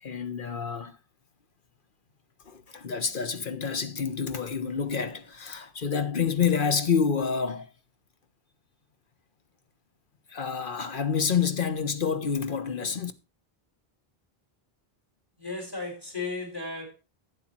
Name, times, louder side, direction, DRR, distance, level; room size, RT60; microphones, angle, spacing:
voice 1, 0.0-1.0 2.5-7.7 10.3-13.1, left 6 dB, 55° left, 1.3 m, -28 dB
voice 2, 15.4-16.9, left 3 dB, 20° left, 5.2 m, -35 dB
11.5 x 8.1 x 4.5 m
omnidirectional pair, 1.0 m